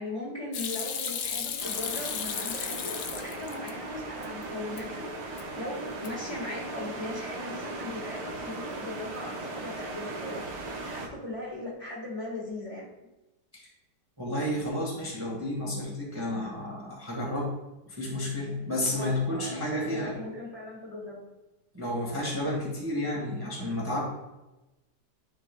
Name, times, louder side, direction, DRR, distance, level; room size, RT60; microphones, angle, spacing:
voice 1, 0.0-10.4 10.8-12.9 18.9-21.2, left 2 dB, 20° left, -5 dB, 1.7 m, -39 dB
Hands / Sink (filling or washing), 0.5-3.7 4.1-4.8 5.2-5.6 5.9-6.4, left 7 dB, 65° left, 0.8 m, -34 dB
sound 1, 1.6-11.1, right 2 dB, 85° right, 1.6 m, -38 dB
voice 2, 14.2-17.5 17.9-20.2 21.7-24.0, left 1 dB, 15° right, -4 dB, 1.4 m, -31 dB
11.0 x 5.2 x 2.3 m, 1.0 s
omnidirectional pair, 1.8 m